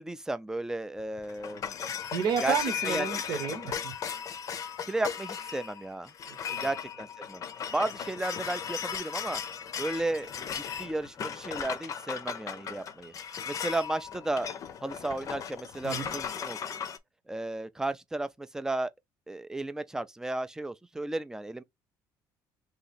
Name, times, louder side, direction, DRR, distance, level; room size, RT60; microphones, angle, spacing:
voice 1, 0.0-1.8 2.4-2.5 2.8-3.4 4.9-6.1 6.6-7.4 7.7-9.4 9.8-13.1 13.5-14.5 14.8-16.8 17.3-18.9 19.3-21.6, right 2 dB, 5° right, 0.4 m, -34 dB
sound 1, 1.0-17.0, left 8 dB, 45° left, 0.6 m, -37 dB
voice 2, 2.1-4.0 6.3-6.7 15.8-16.1, right 7 dB, 65° right, 0.9 m, -31 dB
2.8 x 2.8 x 4.1 m
cardioid pair, 115°, 8 cm